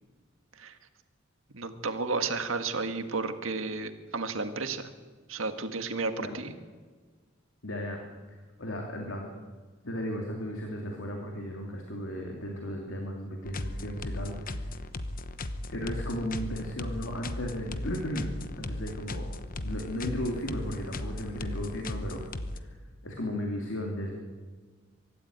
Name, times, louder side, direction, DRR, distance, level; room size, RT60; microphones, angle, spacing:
voice 1, 1.5-4.9 5.3-6.5, right 3 dB, 90° right, 8 dB, 1.7 m, -32 dB
voice 2, 7.6-8.0 8.6-9.3 9.8-14.6 15.7-18.3 18.5-19.3 19.6-22.2 23.0-24.1, equal, 70° left, 1 dB, 2.8 m, -35 dB
sound 1, 13.4-22.6, left 1 dB, 45° left, 1.0 m, -37 dB
24.0 x 13.5 x 9.3 m, 1.5 s
head